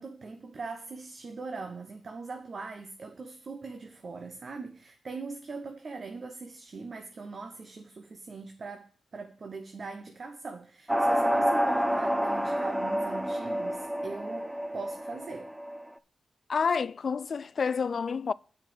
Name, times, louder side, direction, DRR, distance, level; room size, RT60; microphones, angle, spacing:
voice 1, 0.0-15.5, right 4 dB, 60° right, 1.1 m, -41 dB
sound 1, 10.9-15.9, equal, 15° right, 0.8 m, -28 dB
voice 2, 16.5-18.3, left 5 dB, 65° left, 0.3 m, -29 dB
7.7 x 5.8 x 6.9 m
cardioid pair, 55°, 0 cm